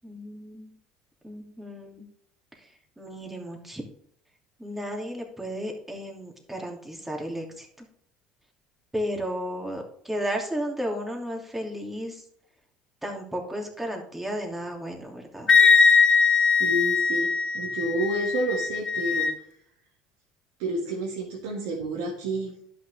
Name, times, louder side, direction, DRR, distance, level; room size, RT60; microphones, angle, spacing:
voice 1, 0.0-0.7 1.2-2.1 2.5-3.8 4.6-7.9 8.9-12.2 13.0-15.5, equal, 10° right, 1 dB, 2.7 m, -34 dB
Wind instrument woodwind instrument, 15.5-19.3, left 5 dB, 30° left, 0.9 m, -21 dB
voice 2, 16.6-19.3 20.6-22.5, right 1 dB, 75° right, -3 dB, 2.1 m, -29 dB
11.5 x 6.0 x 3.4 m, 0.68 s
hypercardioid pair, 75°, 3 cm